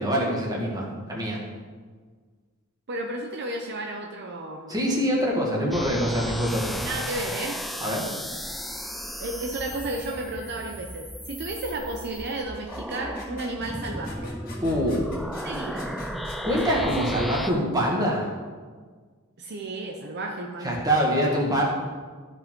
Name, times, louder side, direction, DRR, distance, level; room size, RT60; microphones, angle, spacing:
voice 1, 0.0-1.4 4.7-6.8 7.8-8.1 14.6-15.0 16.4-18.3 20.6-21.6, equal, 20° right, -2 dB, 1.7 m, -24 dB
voice 2, 2.9-4.7 6.8-7.6 9.2-14.3 15.4-15.9 16.9-17.0 19.4-20.9, right 2 dB, 55° right, 1 dB, 0.7 m, -33 dB
sound 1, 5.7-17.5, equal, ahead, 0.3 m, -35 dB
sound 2, 12.2-17.1, left 3 dB, 45° left, 2.0 m, -45 dB
13.0 x 5.2 x 3.7 m, 1.5 s
head